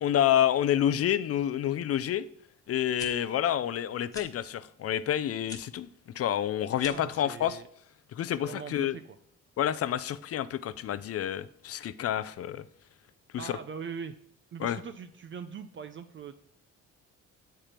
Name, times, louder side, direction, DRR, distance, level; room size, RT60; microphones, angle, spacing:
voice 1, 0.0-2.3 2.7-5.9 6.2-7.6 8.1-9.0 9.6-12.6 13.3-13.6 14.6-14.8, left 10 dB, 50° left, 0.5 m, -28 dB
sound 1, 3.0-3.1 4.1-4.3 5.4-5.6 6.7-7.1, left 2 dB, 10° left, 1.1 m, -43 dB
voice 2, 6.9-7.7 8.3-9.2 13.4-14.1 14.5-16.3, right 6 dB, 40° right, 0.5 m, -41 dB
7.2 x 4.5 x 5.0 m
cardioid pair, 90°, 30 cm